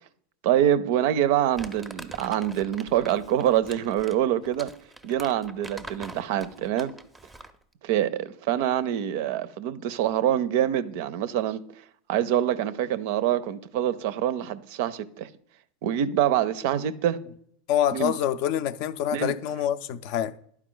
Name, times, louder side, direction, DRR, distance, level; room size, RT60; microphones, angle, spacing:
voice 1, 0.4-4.7 5.0-6.9 7.8-11.6 12.1-15.3 15.8-17.2 17.9-18.1 19.1-19.3, right 11 dB, 65° right, 0.5 m, -25 dB
Crumpling crinkling, 1.5-7.6, right 2 dB, 5° right, 0.5 m, -44 dB
voice 2, 17.7-20.3, left 10 dB, 55° left, 0.4 m, -26 dB
11.0 x 4.5 x 3.8 m
supercardioid pair, 125°, 0 cm